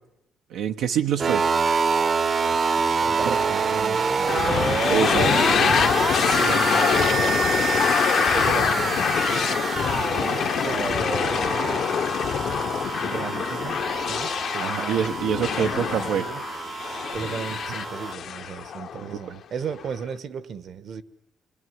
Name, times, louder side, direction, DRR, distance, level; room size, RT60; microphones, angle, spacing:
voice 1, 0.5-1.4 3.3-3.4 4.9-5.7 14.6-16.2 19.3-19.4, right 8 dB, 85° right, 1.0 m, -26 dB
sound 1, 1.2-18.1, right 5 dB, 45° right, 1.0 m, -27 dB
voice 2, 3.0-5.6 6.4-9.3 10.1-11.5 13.0-13.8 14.1-16.4 16.8-21.0, right 7 dB, 60° right, 1.3 m, -35 dB
sound 2, 4.3-19.2, left 8 dB, 65° left, 0.9 m, -25 dB
27.5 x 22.5 x 9.5 m
cardioid pair, 90°, 0 cm